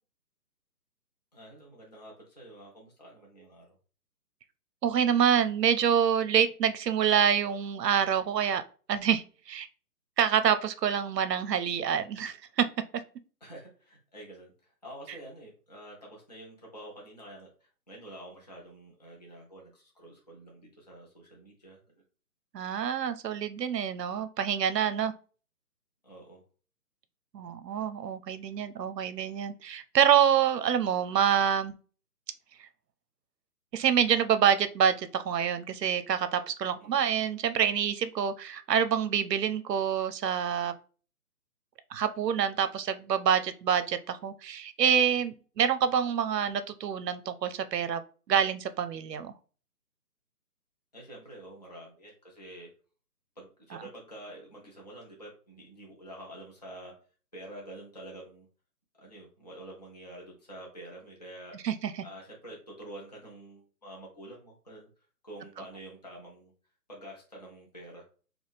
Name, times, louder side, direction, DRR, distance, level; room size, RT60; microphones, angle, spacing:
voice 1, 1.3-3.8 13.4-17.5 17.9-21.8 26.0-26.4 36.8-37.1 50.9-52.7 53.4-56.9 57.3-58.5 59.0-61.6 62.0-64.9 65.2-66.5 66.9-68.0, right 1 dB, 25° left, -3 dB, 0.6 m, -47 dB
voice 2, 4.8-8.6 8.9-9.7 10.2-12.7 22.5-25.1 27.3-31.7 33.7-40.7 41.9-48.0 48.3-49.3 53.7-53.8 61.5-61.9, right 8 dB, 80° right, 12 dB, 0.6 m, -26 dB
4.2 x 2.3 x 3.3 m, 0.38 s
hypercardioid pair, 170°, 48 cm